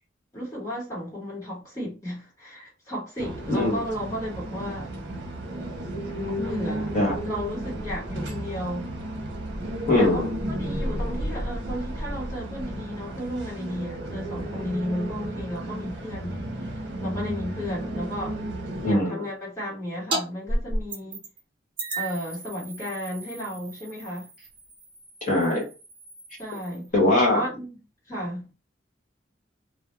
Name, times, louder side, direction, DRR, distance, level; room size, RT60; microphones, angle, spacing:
voice 1, 0.3-4.9 6.4-6.9 7.2-8.9 10.0-16.4 17.0-18.4 18.8-21.2 22.0-24.3 26.4-26.9 27.3-27.8 28.1-28.5, equal, 15° left, 1.1 m, -34 dB
sound 1, 3.2-18.9, right 1 dB, 60° right, 0.7 m, -33 dB
voice 2, 3.5-3.8 6.9-7.1 9.9-10.3 18.8-19.2 25.2-25.7 26.9-27.4, left 1 dB, 40° left, 1.1 m, -21 dB
sound 2, 20.1-20.2 20.5-21.4 21.8-26.9, right 1 dB, 25° right, 0.7 m, -34 dB
2.3 x 2.0 x 3.0 m
head